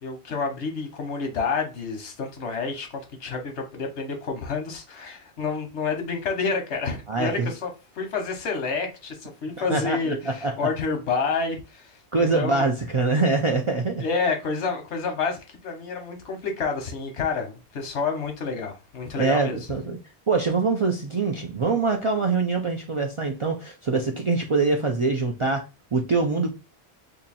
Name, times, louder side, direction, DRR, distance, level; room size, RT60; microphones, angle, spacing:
voice 1, 0.0-7.7 7.9-12.7 14.0-19.6, left 4 dB, 90° left, 1.2 m, -29 dB
voice 2, 7.1-7.5 9.7-10.5 12.1-14.0 19.2-20.0 20.3-25.6 25.9-26.5, right 3 dB, 55° right, 0.3 m, -24 dB
2.8 x 2.6 x 4.0 m
omnidirectional pair, 1.1 m